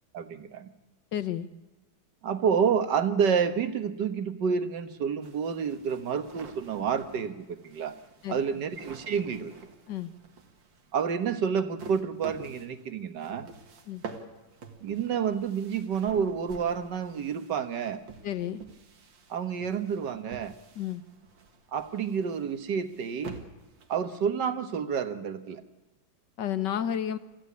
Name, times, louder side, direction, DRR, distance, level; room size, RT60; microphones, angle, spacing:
voice 1, 0.1-0.7 2.2-8.0 8.3-9.5 10.9-13.5 14.8-18.0 19.3-20.6 21.7-23.4 23.9-25.6, right 7 dB, 70° right, 10 dB, 1.9 m, -29 dB
voice 2, 1.1-1.5 8.2-8.4 9.9-10.1 13.9-14.0 18.2-18.6 20.8-21.0 26.4-27.2, left 10 dB, 70° left, 13 dB, 1.6 m, -31 dB
sound 1, 5.2-24.4, right 4 dB, 85° right, 2.6 m, -49 dB
24.5 x 15.0 x 8.5 m, 1.1 s
omnidirectional pair, 2.0 m